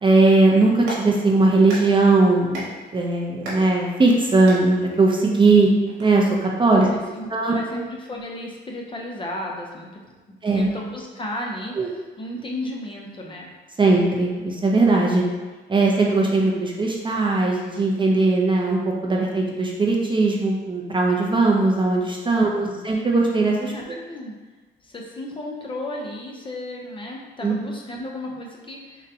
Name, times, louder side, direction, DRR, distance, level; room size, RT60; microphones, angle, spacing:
voice 1, 0.0-2.7 2.9-5.7 6.0-6.9 7.3-7.7 10.4-10.7 11.8-11.9 13.8-15.2 15.7-24.0 27.4-27.6, right 3 dB, 25° right, -2 dB, 0.4 m, -19 dB
Clapping, 0.6-6.0, right 1 dB, 90° right, 1.0 m, -39 dB
voice 2, 6.7-13.5 22.4-22.8 23.7-23.8 24.1-24.4 24.8-29.1, left 1 dB, 25° left, -1 dB, 0.5 m, -34 dB
3.8 x 2.1 x 2.6 m, 1.3 s
cardioid pair, 90°, 20 cm